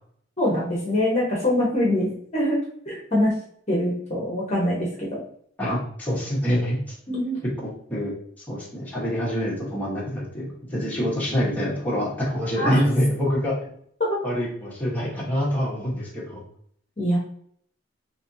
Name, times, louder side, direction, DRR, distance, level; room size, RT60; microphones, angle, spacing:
voice 1, 0.4-2.6 2.8-3.3 3.7-5.2 7.1-7.4 12.6-12.8 14.0-14.2 17.0-17.2, left 1 dB, 35° left, -3 dB, 0.9 m, -24 dB
voice 2, 5.6-7.0 7.9-8.1 8.5-13.6 14.2-16.4, equal, 10° left, -6 dB, 1.2 m, -26 dB
4.1 x 2.9 x 2.7 m, 0.64 s
head